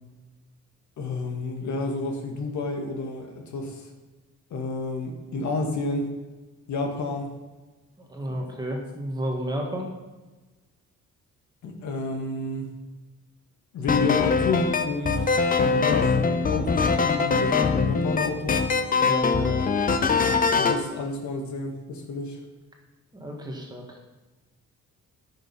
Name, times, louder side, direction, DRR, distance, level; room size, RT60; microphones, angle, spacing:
voice 1, 1.0-3.9 4.5-6.1 6.7-7.3 8.3-8.4 11.6-12.7 13.7-18.7 20.6-22.4, left 3 dB, 70° left, 3 dB, 2.0 m, -30 dB
voice 2, 8.0-9.9 18.9-19.7 23.1-24.0, equal, 15° right, 0 dB, 1.7 m, -32 dB
sound 1, 13.9-20.8, left 5 dB, 30° left, 0.8 m, -22 dB
15.0 x 6.5 x 5.5 m, 1.2 s
cardioid pair, 175°, 30 cm